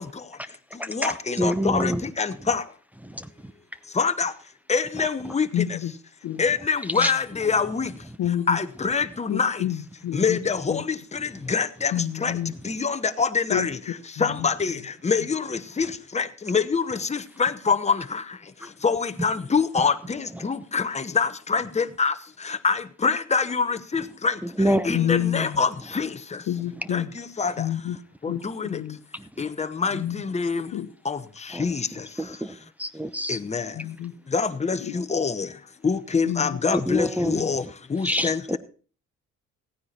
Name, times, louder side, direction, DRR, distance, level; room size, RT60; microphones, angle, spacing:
voice 1, 0.0-2.7 3.8-4.3 4.7-5.8 6.4-8.1 8.5-9.6 10.1-12.4 12.6-26.5 26.9-27.7 28.2-28.8 29.4-30.7 31.0-32.4 33.3-33.8 34.3-38.6, left 5 dB, 20° left, 10 dB, 1.0 m, -26 dB
voice 2, 0.8-2.0 2.4-2.5 3.0-3.5 5.2-5.3 7.0-7.1 11.4-11.5 18.6-18.7 20.4-20.5 24.6-25.0 29.1-29.5 31.5-31.7 32.2-33.4 36.7-37.4 38.0-38.6, equal, 5° right, 8 dB, 0.8 m, -27 dB
voice 3, 5.5-5.9 6.2-6.4 7.0-7.1 8.2-8.6 9.3-10.4 10.7-10.8 11.9-12.5 13.5-13.7 14.2-14.5 24.9-25.6 26.5-27.1 27.6-28.0 28.2-29.0 29.9-30.2 30.7-30.9 33.7-34.1 34.8-35.0 36.2-36.6 37.3-37.5, left 11 dB, 75° left, 12 dB, 1.0 m, -28 dB
15.5 x 9.5 x 4.3 m, 0.40 s
cardioid pair, 90°, 30 cm